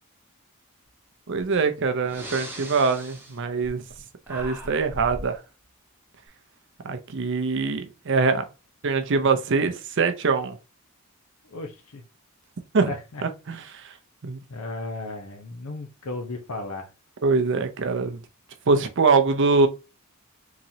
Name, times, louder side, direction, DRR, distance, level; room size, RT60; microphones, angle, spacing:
voice 1, 1.3-3.8 4.3-5.4 6.8-8.5 8.8-10.6 12.7-12.9 13.2-13.9 14.2-14.4 17.2-18.2 18.7-19.7, right 4 dB, 55° right, 0.5 m, -23 dB
Breathing, 1.4-1.5 2.0-4.0 4.2-5.3, right 1 dB, 10° right, 0.7 m, -39 dB
voice 2, 11.4-12.0 12.9-13.2 14.5-16.9, left 2 dB, 80° left, 0.7 m, -35 dB
3.8 x 3.0 x 2.7 m
head